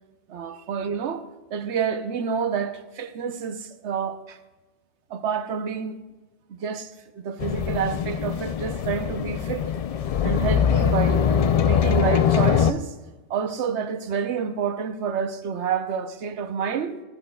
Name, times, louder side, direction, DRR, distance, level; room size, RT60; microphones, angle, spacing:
voice 1, 0.3-4.4 5.1-6.0 6.5-9.7 10.2-11.3 11.6-12.9 13.3-17.0, right 6 dB, 75° right, 1.0 m, -28 dB
sound 1, 7.4-12.7, left 8 dB, 75° left, 0.3 m, -22 dB
14.5 x 13.5 x 2.2 m
omnidirectional pair, 1.2 m